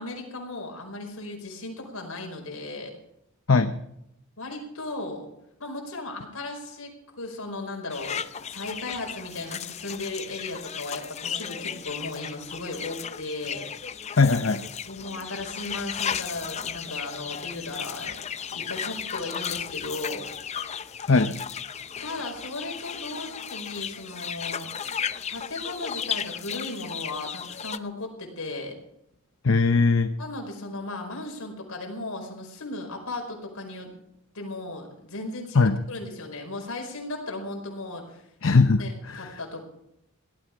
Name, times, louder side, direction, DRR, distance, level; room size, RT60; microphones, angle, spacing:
voice 1, 0.0-2.9 4.4-5.3 5.6-13.7 14.9-20.3 22.0-24.7 25.3-28.7 30.2-34.0 34.3-38.2 38.8-39.6, left 2 dB, 85° left, 2 dB, 4.9 m, -36 dB
sound 1, 7.9-27.8, left 7 dB, 30° left, 0.5 m, -35 dB
voice 2, 14.2-14.6 21.1-21.4 29.4-30.1 35.5-35.8 38.4-39.3, left 4 dB, 65° left, 8 dB, 0.8 m, -20 dB
17.5 x 13.0 x 5.1 m, 0.77 s
head